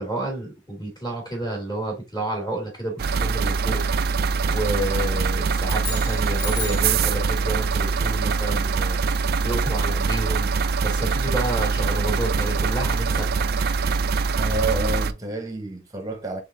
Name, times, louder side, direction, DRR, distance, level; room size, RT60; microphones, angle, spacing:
voice 1, 0.0-3.8 4.5-9.0 9.4-10.5 10.8-13.5, right 1 dB, 20° left, 1.9 m, -30 dB
sound 1, 3.0-15.1, right 4 dB, 50° right, 0.4 m, -23 dB
sound 2, 5.6-7.0, left 4 dB, 55° left, 1.4 m, -34 dB
voice 2, 14.4-16.4, right 2 dB, 20° right, 1.0 m, -29 dB
3.9 x 3.5 x 3.7 m
head